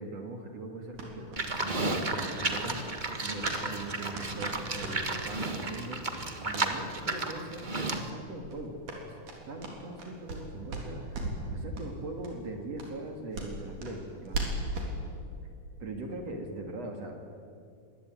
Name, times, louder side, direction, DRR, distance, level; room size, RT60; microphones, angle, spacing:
voice 1, 0.0-2.8 3.2-6.0 6.4-7.7 7.9-8.7 9.0-9.2 9.5-11.2 11.5-14.6 15.8-17.2, right 2 dB, 55° right, 3 dB, 3.0 m, -41 dB
sound 1, 0.9-3.6 3.9-5.3 5.7-5.8 6.1-6.7 7.1-7.2 7.5-7.7 7.9-8.1 8.4-10.4 10.7-11.5 11.7-11.9 12.2-12.3 12.8-14.9, right 2 dB, 85° right, 5.1 m, -38 dB
Livestock farm animals working animals, 1.4-8.1, right 2 dB, 35° right, 0.7 m, -33 dB
24.0 x 20.0 x 9.2 m, 2.4 s
omnidirectional pair, 3.5 m